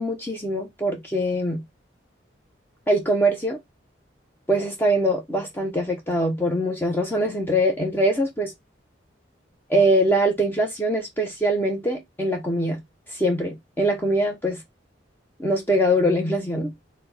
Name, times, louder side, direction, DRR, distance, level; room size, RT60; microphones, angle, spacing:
voice 1, 0.0-1.6 2.9-3.6 4.5-8.5 9.7-12.8 13.1-14.6 15.4-16.7, right 1 dB, 10° left, 0.7 m, -23 dB
4.4 x 2.2 x 3.9 m
head